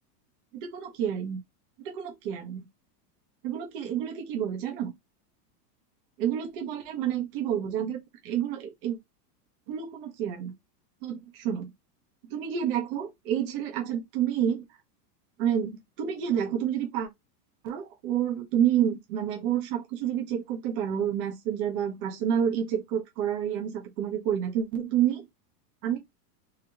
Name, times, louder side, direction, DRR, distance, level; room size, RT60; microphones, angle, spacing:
voice 1, 0.5-1.4 1.8-2.7 3.4-4.9 6.2-9.0 9.7-10.5 11.0-11.7 12.2-14.6 15.4-17.1 17.6-25.3 25.8-26.0, right 9 dB, 35° right, 1.0 m, -29 dB
3.6 x 3.0 x 3.4 m
supercardioid pair, 180°, 48 cm